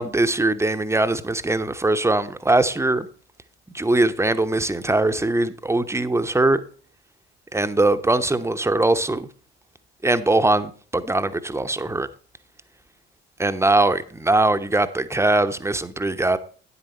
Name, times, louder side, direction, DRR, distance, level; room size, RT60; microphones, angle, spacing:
voice 1, 0.0-3.1 3.7-6.6 7.5-9.3 10.0-12.1 13.4-16.4, right 2 dB, 10° right, 0.8 m, -21 dB
9.7 x 8.1 x 4.3 m
figure-of-eight pair, 50°, 35 cm